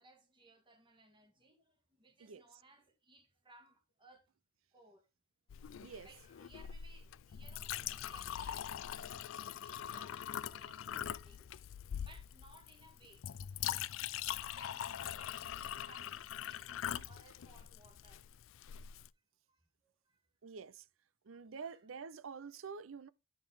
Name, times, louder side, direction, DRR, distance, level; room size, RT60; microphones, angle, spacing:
voice 1, 0.0-4.3 4.7-5.1 5.5-5.8 6.0-11.5 12.0-13.3 13.7-18.2 19.5-20.2 21.3-21.8, right 2 dB, 25° right, 2.0 m, -63 dB
voice 2, 2.2-2.6 5.8-6.2 17.0-17.1 20.4-20.9 21.2-23.1, right 5 dB, 75° right, 0.5 m, -48 dB
Chink clink, 5.5-19.1, left 10 dB, 70° left, 0.4 m, -43 dB
10.5 x 6.1 x 3.6 m
head